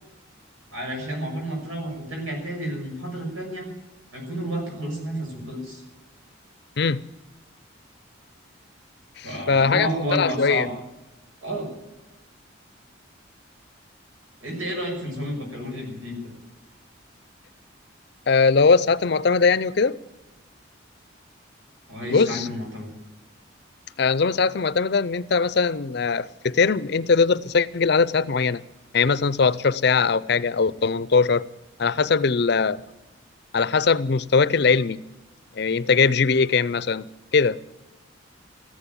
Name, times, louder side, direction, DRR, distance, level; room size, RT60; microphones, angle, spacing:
voice 1, 0.7-3.7 4.1-5.8 9.2-10.7 11.4-11.7 14.4-16.3 21.9-22.9, equal, 90° right, 6.3 m, -30 dB
voice 2, 9.2-10.7 18.3-20.0 22.1-22.5 24.0-28.6 28.9-31.5 31.8-32.8 33.5-35.0 35.6-37.0 37.3-37.6, left 4 dB, 55° left, 0.5 m, -20 dB
14.5 x 11.0 x 9.0 m
head